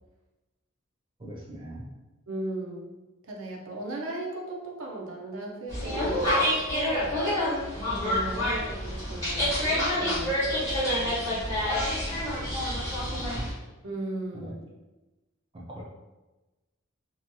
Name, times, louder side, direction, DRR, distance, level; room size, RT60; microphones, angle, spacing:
voice 1, 1.2-1.9 12.1-12.2 12.4-13.5 14.3-14.5 15.5-15.8, right 1 dB, 25° right, -4 dB, 0.5 m, -42 dB
voice 2, 2.3-3.0 3.3-7.2 7.8-11.4 13.8-14.8, right 2 dB, 70° right, 0 dB, 0.6 m, -37 dB
sound 1, 5.7-13.5, left 1 dB, 15° left, 1.1 m, -28 dB
2.9 x 2.8 x 2.2 m, 1.1 s
head